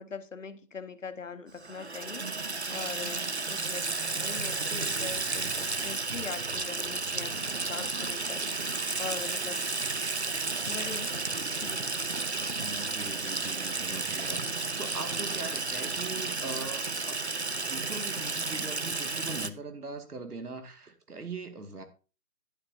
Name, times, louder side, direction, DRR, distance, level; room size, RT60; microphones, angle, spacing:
voice 1, 0.0-3.9 4.1-9.6 10.7-11.1 11.6-11.9, left 5 dB, 55° left, 10 dB, 0.9 m, -42 dB
Water tap faucet / Sink (filling or washing), 1.6-19.5, right 3 dB, 45° right, 0.5 m, -32 dB
voice 2, 12.6-17.2 17.6-21.8, right 3 dB, 70° right, 7 dB, 2.3 m, -41 dB
11.5 x 9.5 x 2.8 m, 0.34 s
figure-of-eight pair, 175°, 46 cm